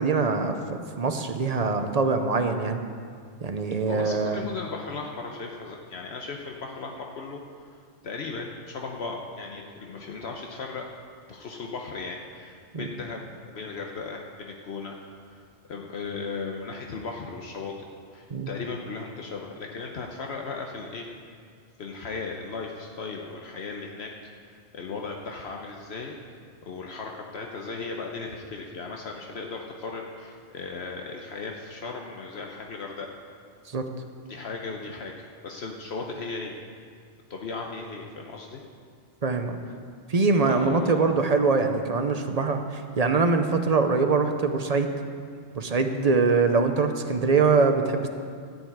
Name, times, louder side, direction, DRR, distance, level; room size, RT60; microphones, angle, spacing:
voice 1, 0.0-2.8 3.4-4.4 12.7-12.9 18.3-18.5 33.7-33.9 39.2-39.6 40.1-44.9 45.5-48.1, right 4 dB, 40° right, 6 dB, 0.7 m, -23 dB
voice 2, 3.9-7.4 7.7-10.9 11.3-15.0 15.3-15.4 15.7-17.7 18.1-21.1 21.8-24.1 24.4-26.2 26.6-33.1 34.3-36.6 37.3-38.6 40.4-41.0, left 4 dB, 70° left, 1 dB, 1.1 m, -36 dB
13.5 x 5.4 x 8.7 m, 2.1 s
omnidirectional pair, 1.1 m